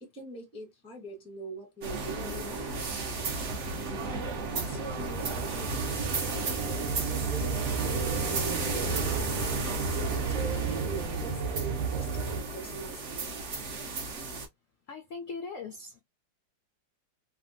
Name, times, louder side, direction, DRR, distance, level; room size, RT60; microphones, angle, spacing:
voice 1, 0.0-2.7 4.0-6.8 7.1-9.4 10.2-13.4, right 2 dB, 5° left, 0.5 m, -43 dB
sound 1, 1.8-14.5, right 3 dB, 55° right, 0.8 m, -34 dB
sound 2, 2.5-12.4, right 5 dB, 85° right, 1.5 m, -34 dB
sound 3, 4.3-10.5, right 3 dB, 70° right, 1.3 m, -52 dB
voice 2, 14.9-16.0, left 4 dB, 75° left, 0.7 m, -40 dB
3.4 x 2.3 x 2.5 m
omnidirectional pair, 2.0 m